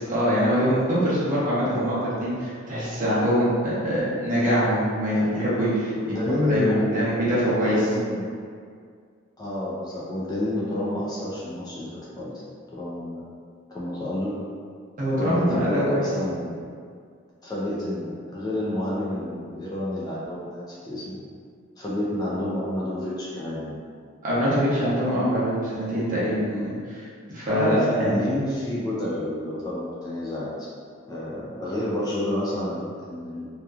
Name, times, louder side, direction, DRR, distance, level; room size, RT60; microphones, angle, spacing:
voice 1, 0.0-5.9 6.5-7.8 15.0-16.0 24.2-28.2, equal, 40° right, -9 dB, 0.8 m, -24 dB
voice 2, 5.9-8.3 9.4-11.9 12.2-12.3 12.7-13.2 13.7-14.4 15.1-16.6 17.4-21.2 21.8-23.8 27.4-30.7 31.1-33.5, left 1 dB, 20° left, -7 dB, 0.4 m, -29 dB
2.8 x 2.2 x 2.4 m, 2.1 s
head